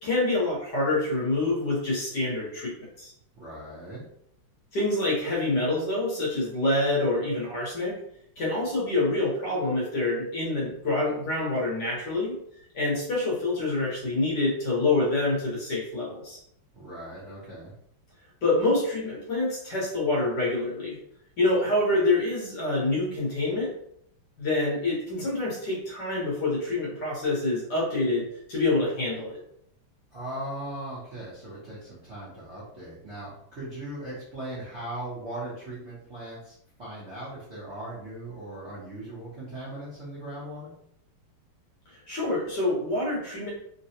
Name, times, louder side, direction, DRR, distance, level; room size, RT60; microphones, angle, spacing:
voice 1, 0.0-2.7 3.0-3.1 4.7-7.9 8.4-12.4 12.7-16.4 18.4-21.0 21.4-23.7 24.4-29.4 42.1-43.5, left 2 dB, 60° left, -5 dB, 1.4 m, -26 dB
voice 2, 3.3-4.0 16.7-17.7 30.1-40.7, right 1 dB, 50° right, -9 dB, 0.8 m, -39 dB
3.8 x 2.2 x 2.7 m, 0.72 s
omnidirectional pair, 2.4 m